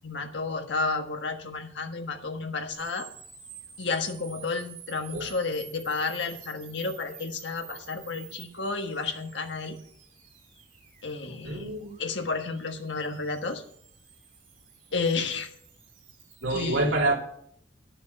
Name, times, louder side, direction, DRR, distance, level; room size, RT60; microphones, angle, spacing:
voice 1, 0.0-3.1 3.8-9.8 11.0-11.6 12.0-13.6 14.9-15.5 16.5-17.0, left 4 dB, 65° left, 5 dB, 1.5 m, -31 dB
sound 1, 2.7-16.4, right 8 dB, 45° right, 2.5 m, -50 dB
voice 2, 11.4-12.0 16.4-17.2, right 2 dB, 75° right, 0 dB, 2.8 m, -27 dB
11.5 x 6.9 x 6.3 m, 0.68 s
head